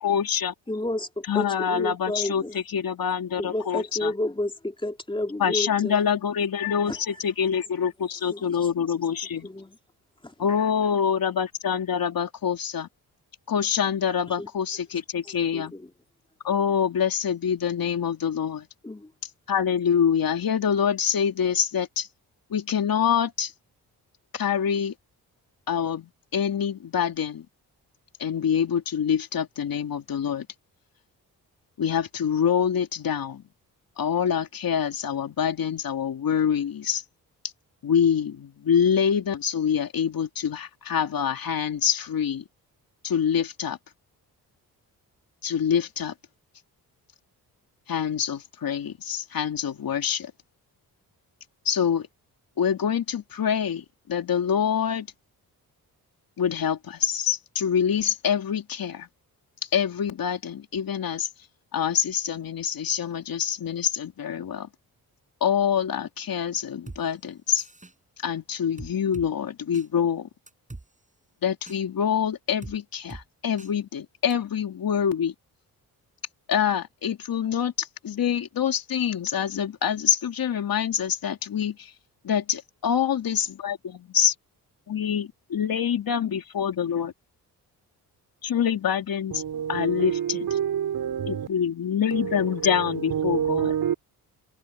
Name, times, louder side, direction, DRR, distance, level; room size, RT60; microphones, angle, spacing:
voice 1, 0.0-0.5 1.3-4.1 5.4-9.5 10.4-12.9 13.5-15.7 16.4-18.7 19.5-22.1 22.5-23.5 24.3-24.9 25.7-27.4 28.2-30.5 31.8-33.4 34.0-37.0 37.8-42.4 43.0-43.8 45.4-46.1 47.9-50.3 51.6-52.1 52.6-55.1 56.4-59.1 59.7-61.3 61.7-64.7 65.4-67.6 68.2-70.3 71.4-75.3 76.5-81.9 82.2-84.3 84.9-87.1 88.4-89.4 89.7-90.5 91.3-93.7, left 8 dB, 65° left, 3.1 m, -25 dB
voice 2, 0.7-2.6 3.4-6.0 6.9-7.0 8.3-8.6 9.4-9.8 10.2-10.3 14.4-14.5 15.2-15.9 18.8-19.1, left 1 dB, 15° left, 3.1 m, -31 dB
sound 1, 66.9-67.0 67.6-67.9 68.8-69.3 69.7-69.9 70.5-70.9 71.7-71.8 72.6-72.8 73.1-73.2 73.6-73.7 74.3-74.4, right 2 dB, 20° right, 6.4 m, -41 dB
voice 3, 89.3-91.5 92.1-93.9, right 9 dB, 70° right, 4.6 m, -28 dB
cardioid pair, 70°, 38 cm